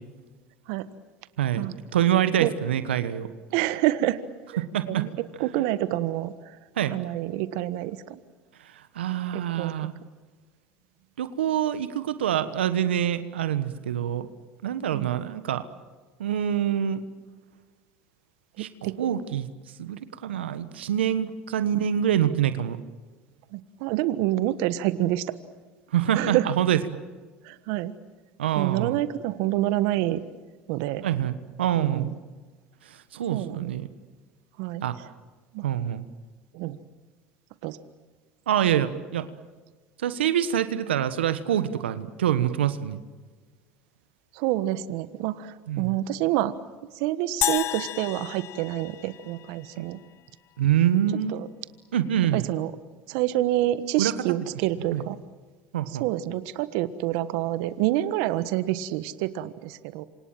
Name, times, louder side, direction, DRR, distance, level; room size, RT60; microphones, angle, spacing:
voice 1, 1.4-3.3 4.6-5.0 6.8-6.9 8.6-9.9 11.2-14.3 14.6-15.6 16.2-17.0 18.6-19.5 19.8-22.8 25.9-26.8 28.4-29.0 31.0-32.1 32.8-33.9 34.8-34.9 35.6-36.0 38.5-39.3 40.0-43.0 45.7-45.9 49.8-49.9 50.6-51.3 51.9-52.4 54.0-54.1 54.9-55.0 55.7-56.1, right 10 dB, 90° right, 12 dB, 1.3 m, -26 dB
voice 2, 3.5-4.2 4.5-6.6 6.9-8.2 9.3-9.7 14.9-15.1 18.6-19.2 23.5-25.3 26.1-26.5 27.4-27.9 28.5-30.2 30.7-31.0 31.7-32.2 33.3-33.7 34.6-35.0 35.5-35.7 36.5-36.8 37.6-37.8 44.3-46.5 46.9-50.0 51.3-51.5 52.3-52.7 53.1-55.2 55.9-60.0, right 15 dB, 70° right, 14 dB, 1.3 m, -27 dB
sound 1, 47.4-49.8, left 12 dB, 50° left, 1.4 m, -31 dB
28.0 x 26.5 x 7.6 m, 1.4 s
hypercardioid pair, 80°, 6 cm